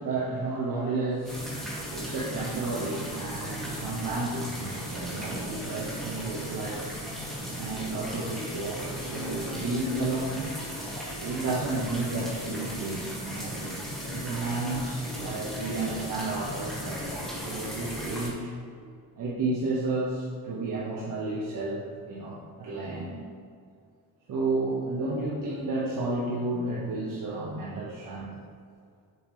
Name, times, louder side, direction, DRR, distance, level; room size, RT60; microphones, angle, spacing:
voice 1, 0.0-7.2 7.5-10.6 11.2-13.8 14.1-18.5 18.8-18.9 19.2-23.2 24.3-28.3, right 2 dB, 50° right, -6 dB, 1.4 m, -32 dB
sound 1, 1.2-18.3, equal, ahead, 2.0 m, -36 dB
8.1 x 7.3 x 3.3 m, 2.3 s
cardioid pair, 120°, 41 cm